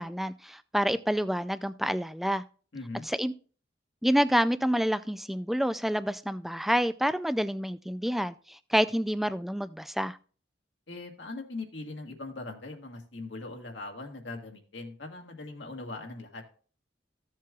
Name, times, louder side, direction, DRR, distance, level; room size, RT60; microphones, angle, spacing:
voice 1, 0.0-2.4 3.0-3.3 4.0-10.2, equal, ahead, 0.3 m, -28 dB
voice 2, 2.7-3.0 10.9-16.4, left 2 dB, 75° left, 1.8 m, -40 dB
15.0 x 7.4 x 2.4 m
head